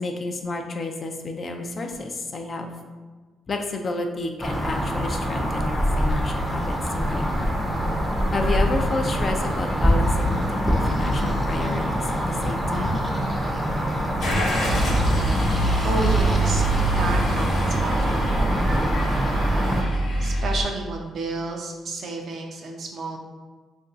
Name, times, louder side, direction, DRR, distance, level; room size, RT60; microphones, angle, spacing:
voice 1, 0.0-2.7 3.5-7.5 8.3-13.0, left 3 dB, 40° left, 4 dB, 0.4 m, -30 dB
sound 1, 4.4-19.8, equal, 5° right, 0.5 m, -24 dB
Car / Engine starting, 14.2-20.6, right 2 dB, 80° left, 0.8 m, -24 dB
voice 2, 15.8-16.6 17.0-18.3 20.2-23.2, right 2 dB, 60° right, 2 dB, 0.5 m, -30 dB
2.5 x 2.3 x 3.7 m, 1.4 s
cardioid pair, 90°, 0 cm